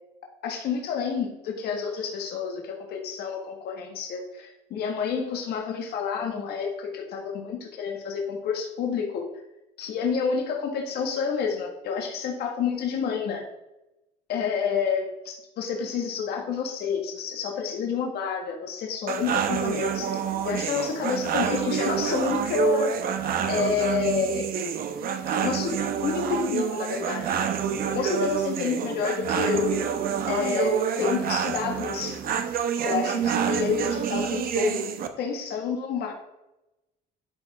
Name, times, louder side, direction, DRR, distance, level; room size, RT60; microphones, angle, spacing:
voice 1, 0.4-9.2 9.8-13.4 14.3-20.2 20.4-22.9 23.5-24.6 25.3-27.5 27.9-29.7 30.2-32.2 32.8-34.8 35.2-36.1, left 6 dB, 70° left, 2 dB, 1.6 m, -29 dB
sound 1, 19.1-35.1, right 8 dB, 60° right, 0.9 m, -27 dB
11.5 x 4.4 x 4.2 m, 0.94 s
cardioid pair, 110°, 17 cm